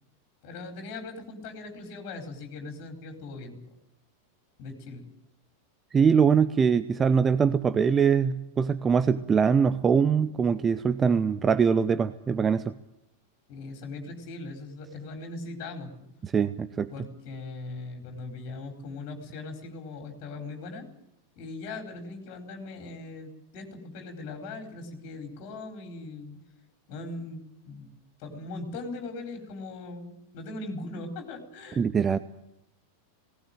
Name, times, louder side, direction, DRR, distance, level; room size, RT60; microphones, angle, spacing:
voice 1, 0.4-3.6 4.6-5.0 13.5-16.1 16.9-20.9 21.4-26.4 26.9-27.9 28.2-31.8, left 3 dB, 45° left, 4 dB, 4.4 m, -40 dB
voice 2, 5.9-12.7 16.2-16.9 31.8-32.2, right 6 dB, 20° right, 13 dB, 0.7 m, -23 dB
18.5 x 18.0 x 9.1 m, 0.86 s
figure-of-eight pair, 90°, 0 cm